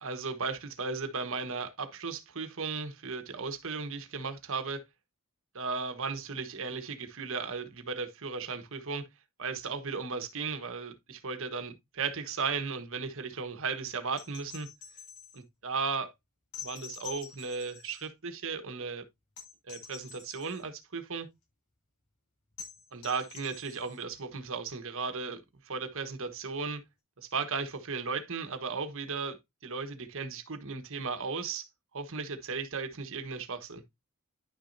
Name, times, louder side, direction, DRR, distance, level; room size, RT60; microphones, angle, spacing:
voice 1, 0.0-4.8 5.5-9.0 9.4-14.7 15.3-16.1 16.6-19.0 19.7-21.3 22.9-26.8 27.2-29.4 29.6-31.7 31.9-33.8, right 4 dB, 60° right, 1.3 m, -36 dB
sound 1, 14.1-15.4 16.5-18.1 19.4-20.6 22.6-24.0 25.8-25.9, left 7 dB, 80° left, 4.5 m, -47 dB
11.0 x 6.2 x 2.7 m
head